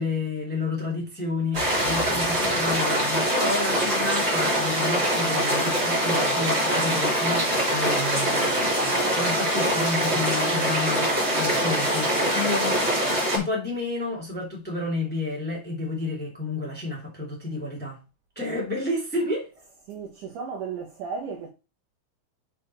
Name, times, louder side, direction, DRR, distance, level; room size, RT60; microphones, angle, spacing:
voice 1, 0.0-8.7 9.1-12.8 13.3-18.0 18.3-19.5, left 2 dB, 5° left, 1.6 m, -30 dB
sound 1, 1.5-13.4, right 1 dB, 20° right, 2.6 m, -24 dB
voice 2, 19.9-21.5, right 5 dB, 90° right, 1.7 m, -34 dB
7.1 x 5.0 x 4.3 m
omnidirectional pair, 5.1 m